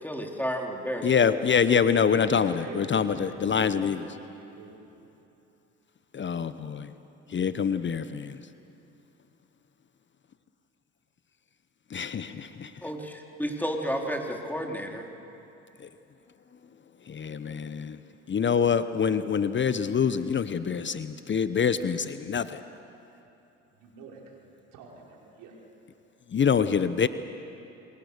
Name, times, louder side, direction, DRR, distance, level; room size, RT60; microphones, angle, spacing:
voice 1, 0.0-1.3 12.8-15.1, equal, 5° left, 1 dB, 3.4 m, -32 dB
voice 2, 1.0-4.0 6.1-6.9 7.3-8.4 11.9-12.7 17.1-18.0 18.3-22.6 26.3-27.1, left 6 dB, 35° left, 12 dB, 0.9 m, -25 dB
voice 3, 1.9-4.8 23.7-25.6 27.0-27.1, right 4 dB, 75° right, -1 dB, 4.9 m, -44 dB
26.5 x 22.0 x 6.7 m, 2.9 s
hypercardioid pair, 60°, 33 cm